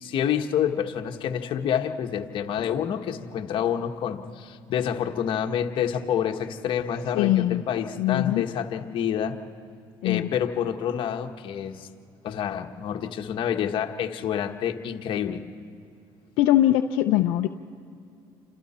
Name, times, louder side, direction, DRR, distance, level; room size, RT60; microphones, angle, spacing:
voice 1, 0.0-9.4 10.0-11.9 12.2-15.4, left 9 dB, 60° left, 5 dB, 1.4 m, -28 dB
voice 2, 7.1-7.6 8.0-8.4 10.0-10.3 16.4-17.5, left 13 dB, 80° left, 6 dB, 0.7 m, -21 dB
29.5 x 26.5 x 4.4 m, 2.5 s
supercardioid pair, 90°, 10 cm